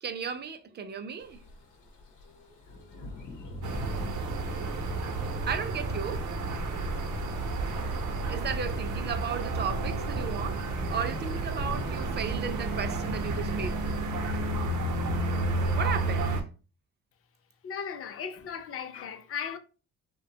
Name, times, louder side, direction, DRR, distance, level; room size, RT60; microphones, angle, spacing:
voice 1, 0.0-1.4 5.5-6.3 8.1-10.6 10.9-13.8 15.8-16.4, right 7 dB, 35° right, 0.4 m, -35 dB
sound 1, 1.2-14.0, left 3 dB, 85° left, 0.8 m, -43 dB
sound 2, 3.6-16.4, right 2 dB, 75° right, 0.6 m, -31 dB
voice 2, 17.6-19.6, left 7 dB, 50° left, 0.5 m, -36 dB
2.7 x 2.2 x 2.7 m
cardioid pair, 90°, 30 cm